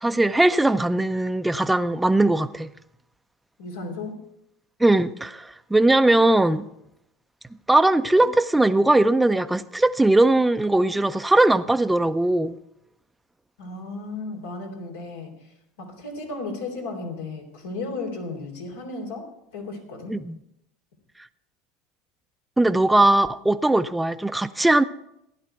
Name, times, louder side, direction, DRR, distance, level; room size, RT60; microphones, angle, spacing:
voice 1, 0.0-2.7 4.8-6.7 7.7-12.6 20.1-20.4 22.6-24.8, right 2 dB, 5° right, 0.6 m, -20 dB
voice 2, 3.6-4.2 13.6-20.2, left 3 dB, 85° left, 3.6 m, -35 dB
15.5 x 11.0 x 4.6 m
hypercardioid pair, 95°, 0 cm